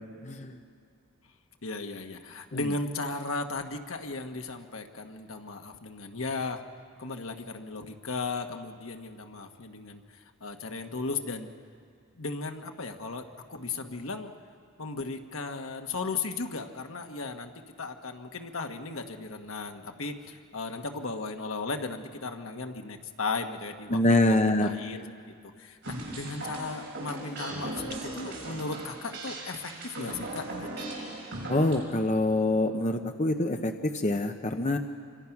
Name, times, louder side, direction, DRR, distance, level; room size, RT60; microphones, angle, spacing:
voice 1, 0.2-0.6 23.9-24.7 31.5-34.8, left 2 dB, 35° left, 5 dB, 0.8 m, -25 dB
voice 2, 1.6-6.6 7.0-10.0 10.4-11.5 12.2-13.2 13.5-14.3 14.8-17.5 17.8-25.0 25.6-30.9, left 3 dB, 75° left, 5 dB, 1.4 m, -36 dB
sound 1, 25.8-31.8, right 2 dB, 60° right, 6.9 m, -38 dB
28.0 x 24.5 x 6.0 m, 2.2 s
head